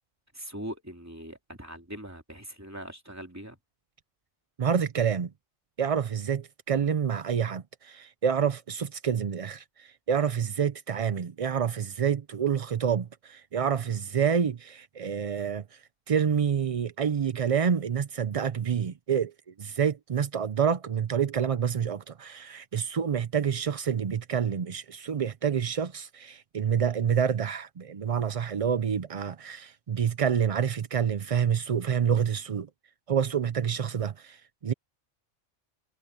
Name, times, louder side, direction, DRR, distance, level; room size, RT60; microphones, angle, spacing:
voice 1, 0.3-3.6, equal, 10° right, 3.1 m, -41 dB
voice 2, 4.6-5.3 5.8-15.8 16.1-19.3 19.6-32.7 33.1-34.7, right 7 dB, 50° right, 0.4 m, -28 dB
omnidirectional pair, 1.3 m